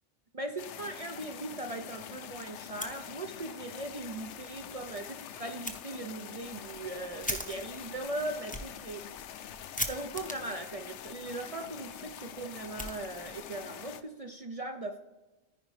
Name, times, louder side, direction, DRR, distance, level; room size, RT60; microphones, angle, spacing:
voice 1, 0.3-9.1 9.5-9.6 9.9-15.0, right 2 dB, 45° right, 5 dB, 0.5 m, -39 dB
sound 1, 0.6-14.0, left 9 dB, 70° left, 0.9 m, -45 dB
Fire, 2.8-3.6 3.9-4.0 4.4-4.5 5.6-5.8 6.3-13.5, left 1 dB, 10° left, 0.7 m, -42 dB
14.0 x 5.1 x 3.2 m, 1.1 s
omnidirectional pair, 1.3 m